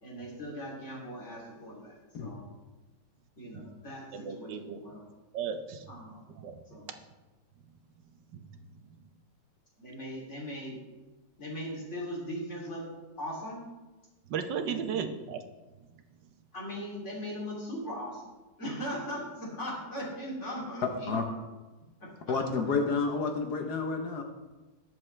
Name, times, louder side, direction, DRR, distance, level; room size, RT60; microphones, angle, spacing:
voice 1, 0.0-2.5 3.4-5.1 5.9-6.2 6.7-6.9 9.8-10.8 11.4-12.9 13.2-13.6 14.7-15.1 16.5-18.2 18.6-21.1 22.0-22.3, equal, 40° left, 3.4 m, -39 dB
voice 2, 4.1-4.8 5.3-5.8 6.4-6.6 8.3-8.4 14.3-15.4, right 7 dB, 80° right, 1.5 m, -34 dB
voice 3, 22.3-24.2, left 4 dB, 65° left, 1.5 m, -30 dB
20.0 x 7.2 x 3.3 m
omnidirectional pair, 1.9 m